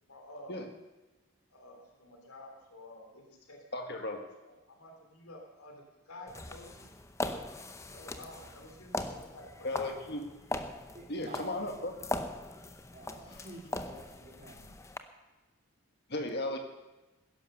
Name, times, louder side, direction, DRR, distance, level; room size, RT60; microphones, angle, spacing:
voice 1, 0.1-0.6 1.5-3.6 4.4-6.9 7.2-7.4 7.9-9.7 10.2-10.3, left 1 dB, 80° left, 2 dB, 3.1 m, -51 dB
voice 2, 3.7-4.2 9.6-10.2 11.1-11.9 16.1-16.6, left 2 dB, 50° left, 4 dB, 1.9 m, -35 dB
sound 1, 6.3-15.0, left 2 dB, 15° left, 0.6 m, -40 dB
voice 3, 10.9-11.8 12.9-14.7, right 1 dB, 35° right, -1 dB, 2.7 m, -49 dB
15.5 x 11.0 x 6.7 m, 1.1 s
head